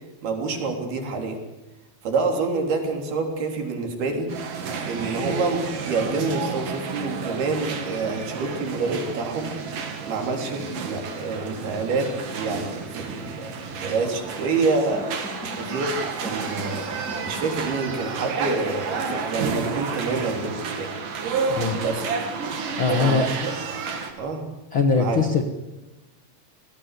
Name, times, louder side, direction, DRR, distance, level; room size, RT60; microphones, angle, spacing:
voice 1, 0.2-1.4 2.0-4.3 4.8-9.6 10.0-15.1 15.6-16.9 17.2-21.0 21.8-22.1 23.0-23.8 24.2-24.5 25.0-25.2, right 3 dB, 75° right, 3 dB, 5.3 m, -27 dB
sound 1, 4.3-24.1, right 5 dB, 60° right, 3.8 m, -31 dB
sound 2, 13.0-20.9, left 1 dB, ahead, 2.5 m, -43 dB
voice 2, 21.5-21.8 22.8-23.3 24.7-25.4, left 5 dB, 50° left, 5 dB, 1.6 m, -21 dB
26.5 x 18.5 x 8.3 m, 1.0 s
omnidirectional pair, 4.5 m